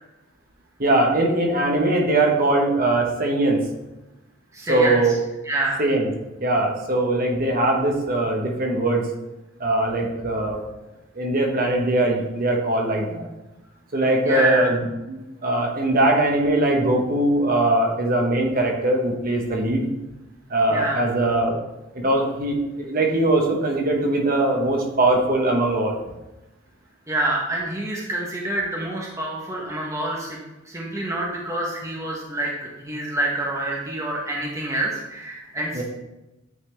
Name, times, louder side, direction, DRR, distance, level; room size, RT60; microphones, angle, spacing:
voice 1, 0.8-3.6 4.7-5.2 5.8-6.1 6.4-9.1 9.6-10.6 11.2-13.3 13.9-19.8 20.5-21.6 21.9-26.0 35.7-35.8, right 2 dB, 45° right, 1 dB, 1.0 m, -21 dB
voice 2, 4.5-5.1 5.4-5.8 14.3-14.7 20.7-21.0 27.1-30.4 30.7-35.8, right 2 dB, 15° right, -3 dB, 0.8 m, -27 dB
9.0 x 4.0 x 3.2 m, 0.98 s
head